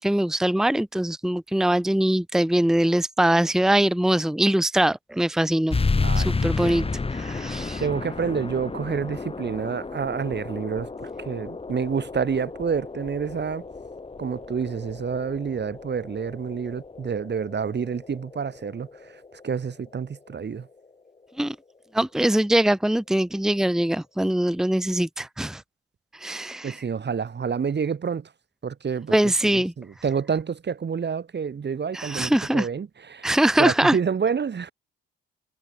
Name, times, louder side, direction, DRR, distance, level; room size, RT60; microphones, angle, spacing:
voice 1, 0.0-5.8 6.2-6.9 7.1-7.8 21.4-21.6 21.9-25.6 26.2-26.8 29.1-29.7 31.9-32.7 33.2-34.0, right 1 dB, ahead, 1.2 m, -22 dB
sound 1, 5.7-20.8, left 3 dB, 20° left, 1.2 m, -32 dB
voice 2, 6.0-6.3 6.6-6.9 7.8-13.6 14.2-20.7 26.6-28.3 28.6-33.3 33.6-34.7, right 6 dB, 35° right, 1.5 m, -28 dB
hypercardioid pair, 55°, 30 cm